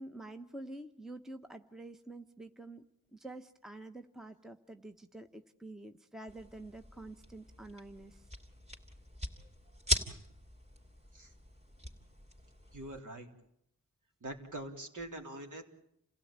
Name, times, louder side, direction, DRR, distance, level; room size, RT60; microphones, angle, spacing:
voice 1, 0.0-2.9 3.1-8.3, right 2 dB, ahead, 8 dB, 1.0 m, -48 dB
sound 1, 6.3-13.0, equal, 20° right, 3.4 m, -41 dB
voice 2, 12.7-13.3 14.2-15.6, right 1 dB, 60° right, 2 dB, 3.7 m, -44 dB
29.0 x 16.5 x 8.9 m, 0.77 s
wide cardioid pair, 80°, 35 cm